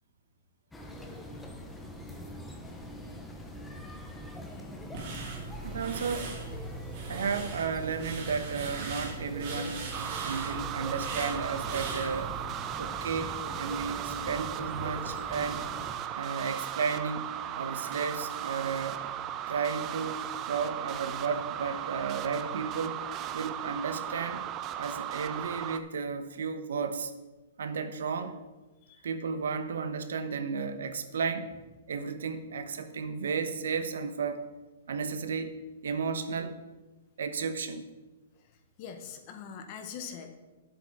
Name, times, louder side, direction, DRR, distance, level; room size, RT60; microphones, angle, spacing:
sound 1, 0.7-16.0, left 1 dB, 5° left, 0.8 m, -43 dB
sound 2, 4.9-12.4, right 4 dB, 40° right, 2.1 m, -39 dB
voice 1, 5.6-6.3 7.1-9.8 10.2-12.3 12.8-13.3 13.6-15.6 16.1-17.3 17.5-19.0 19.5-23.0 23.3-24.4 24.8-27.1 27.6-28.3 29.0-31.5 31.9-34.5 34.9-35.5 35.8-36.6 37.2-37.8, right 5 dB, 85° right, 9 dB, 1.0 m, -33 dB
sound 3, 9.9-25.8, right 10 dB, 20° right, 0.4 m, -37 dB
voice 2, 38.3-40.3, left 7 dB, 30° left, 7 dB, 1.0 m, -43 dB
9.9 x 7.7 x 4.9 m, 1.2 s
hypercardioid pair, 175°, 0 cm